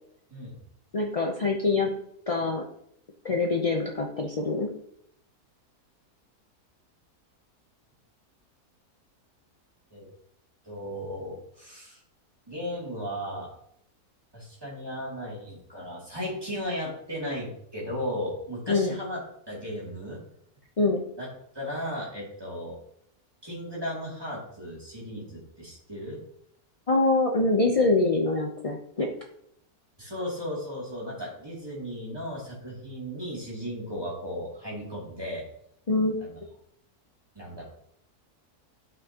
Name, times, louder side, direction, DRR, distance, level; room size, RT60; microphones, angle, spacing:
voice 1, 0.9-1.9 2.3-2.6 3.2-4.7 18.7-18.9 20.8-21.0 26.9-29.1 35.9-36.2, left 3 dB, 40° left, 1 dB, 0.5 m, -24 dB
voice 2, 10.6-12.0 12.5-13.5 14.3-19.2 19.5-20.2 21.2-21.3 21.5-22.8 23.4-26.2 30.0-35.4 36.2-36.4 37.3-37.6, equal, 15° right, -5 dB, 2.7 m, -35 dB
11.5 x 5.7 x 2.9 m, 0.71 s
omnidirectional pair, 1.7 m